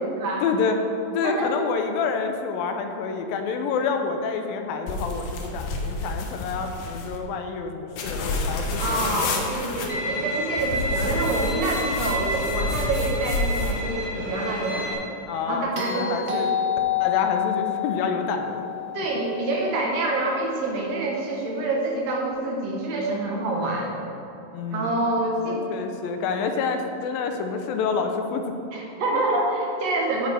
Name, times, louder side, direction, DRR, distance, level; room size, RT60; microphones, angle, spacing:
voice 1, 0.4-0.8 1.1-9.2 15.3-16.5 17.0-18.6 24.5-25.0 25.5-28.5 29.1-29.2, left 5 dB, 90° left, 5 dB, 2.5 m, -28 dB
sound 1, 4.9-7.2 8.0-9.9 10.6-13.8, left 2 dB, 70° left, 1.9 m, -29 dB
voice 2, 8.8-14.9 15.5-16.5 18.9-24.0 24.7-25.6 28.7-30.3, right 2 dB, 60° right, -1 dB, 1.9 m, -27 dB
Bowed string instrument, 9.9-14.9, equal, 35° left, 1.9 m, -30 dB
sound 2, 15.8-20.0 22.3-22.4, left 9 dB, 80° right, 1.0 m, -28 dB
9.4 x 9.0 x 3.4 m, 2.9 s
omnidirectional pair, 4.0 m